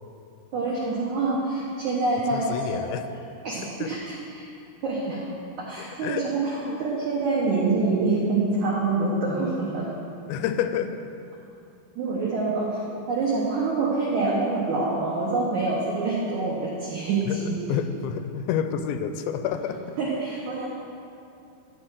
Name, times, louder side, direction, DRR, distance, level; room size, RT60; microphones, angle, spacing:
voice 1, 0.5-2.8 3.4-4.4 4.8-5.2 5.6-9.9 11.9-17.6 20.0-20.7, right 3 dB, 80° right, -5 dB, 1.7 m, -26 dB
voice 2, 2.3-3.1 3.6-4.0 6.0-6.3 6.6-6.8 10.3-11.0 17.3-20.0, left 8 dB, 85° left, 9 dB, 2.8 m, -29 dB
12.0 x 4.3 x 7.9 m, 2.7 s
omnidirectional pair, 5.0 m